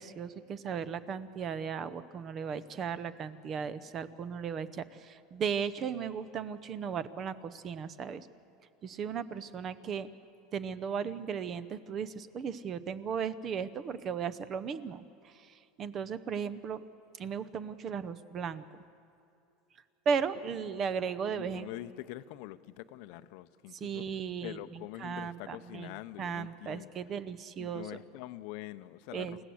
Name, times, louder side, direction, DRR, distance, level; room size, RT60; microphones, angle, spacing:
voice 1, 0.0-8.3 8.8-10.1 10.5-16.8 17.2-18.8 20.1-21.7 23.8-24.6 25.0-25.9 26.2-27.9 29.1-29.4, right 6 dB, 30° right, 15 dB, 0.7 m, -36 dB
voice 2, 21.3-24.1 24.4-26.9 27.6-29.4, left 16 dB, 60° left, 13 dB, 0.7 m, -44 dB
29.0 x 16.0 x 7.9 m, 2.6 s
supercardioid pair, 160°, 0 cm